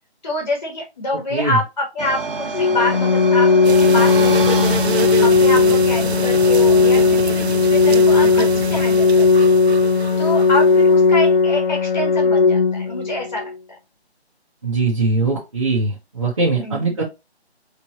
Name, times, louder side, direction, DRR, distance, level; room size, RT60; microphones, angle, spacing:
voice 1, 0.2-9.5 10.2-13.5 16.6-17.0, left 2 dB, 30° left, 1 dB, 1.3 m, -26 dB
sound 1, 2.0-7.2, right 3 dB, 55° right, 1.0 m, -29 dB
Organ, 2.5-13.5, left 4 dB, 50° left, 0.6 m, -16 dB
sound 2, 3.6-11.2, right 6 dB, 75° right, 0.5 m, -28 dB
voice 2, 14.6-17.0, right 3 dB, 30° right, -5 dB, 0.9 m, -21 dB
5.1 x 3.2 x 2.9 m, 0.24 s
figure-of-eight pair, 160°, 33 cm